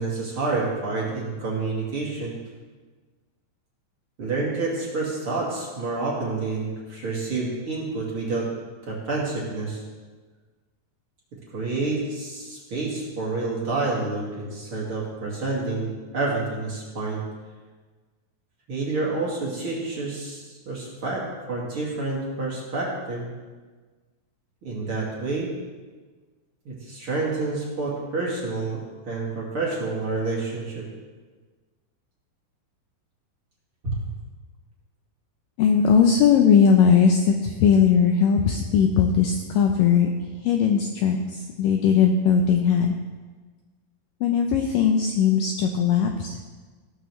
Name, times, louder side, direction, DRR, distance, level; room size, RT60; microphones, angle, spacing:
voice 1, 0.0-2.3 4.2-8.5 8.9-9.8 11.3-17.3 18.7-23.3 24.6-25.5 26.6-30.9 33.8-34.0, right 3 dB, 40° right, -5 dB, 2.5 m, -28 dB
voice 2, 35.6-40.1 40.4-43.0 44.2-46.4, left 7 dB, 90° left, 3 dB, 1.9 m, -19 dB
16.0 x 13.5 x 3.2 m, 1.4 s
omnidirectional pair, 4.9 m